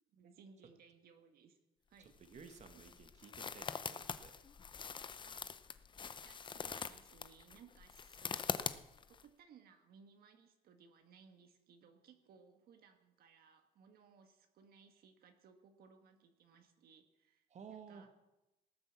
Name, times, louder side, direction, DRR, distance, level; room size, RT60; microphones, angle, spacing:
voice 1, 0.1-1.6 1.9-2.2 5.2-5.5 6.0-8.8 9.1-18.1, right 6 dB, 65° right, 5 dB, 1.5 m, -63 dB
sound 1, 2.0-9.2, left 6 dB, 30° left, 0.6 m, -44 dB
voice 2, 2.2-4.3 17.5-18.1, right 6 dB, 45° right, 6 dB, 1.5 m, -55 dB
18.5 x 7.8 x 7.1 m, 0.97 s
cardioid pair, 110°, 17 cm